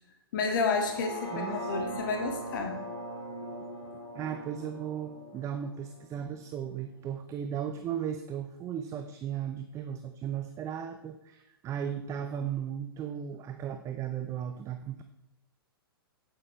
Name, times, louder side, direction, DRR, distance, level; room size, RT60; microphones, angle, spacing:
voice 1, 0.3-2.8, left 4 dB, 55° left, 3 dB, 1.9 m, -30 dB
sound 1, 0.6-6.8 7.2-7.3, equal, 70° left, 3.6 m, -40 dB
voice 2, 1.3-1.7 4.1-15.0, right 9 dB, 25° right, 8 dB, 0.7 m, -36 dB
8.9 x 8.9 x 4.4 m, 0.94 s
figure-of-eight pair, 115°, 13 cm